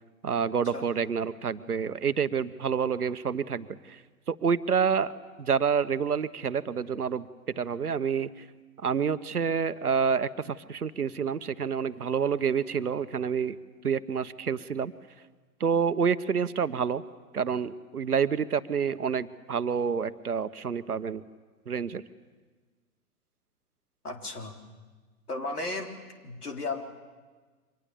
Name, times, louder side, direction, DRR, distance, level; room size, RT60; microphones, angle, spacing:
voice 1, 0.2-4.0 4.3-5.1 5.4-7.3 7.6-8.4 8.8-13.6 13.8-14.9 15.6-17.0 17.3-21.2 21.7-22.0, right 6 dB, 75° right, 13 dB, 1.2 m, -28 dB
voice 2, 24.0-24.5 25.3-25.9 26.2-26.8, left 2 dB, 75° left, 3 dB, 3.8 m, -34 dB
29.0 x 24.5 x 7.1 m, 1.4 s
figure-of-eight pair, 115°, 46 cm